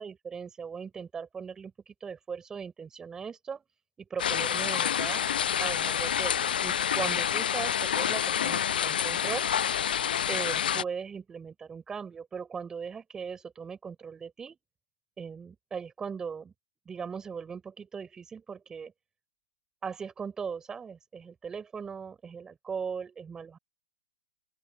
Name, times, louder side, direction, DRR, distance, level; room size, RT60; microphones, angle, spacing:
voice 1, 0.0-3.6 4.1-5.2 5.6-9.5 10.3-14.6 15.2-16.5 16.9-18.9 19.8-23.6, right 6 dB, 15° right, 7.8 m, -39 dB
sound 1, 4.2-10.8, left 9 dB, 85° left, 0.4 m, -28 dB
open air
hypercardioid pair, 145°, 5 cm